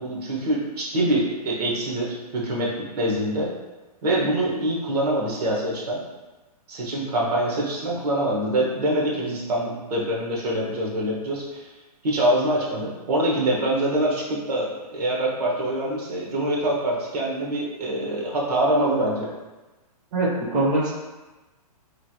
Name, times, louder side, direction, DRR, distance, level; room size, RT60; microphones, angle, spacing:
voice 1, 0.0-3.5 4.0-6.0 6.7-11.6 12.0-19.3, right 1 dB, 70° right, -3 dB, 1.0 m, -25 dB
voice 2, 20.1-20.9, right 2 dB, 30° right, -6 dB, 0.6 m, -22 dB
3.1 x 2.5 x 2.7 m, 1.1 s
hypercardioid pair, 155°, 20 cm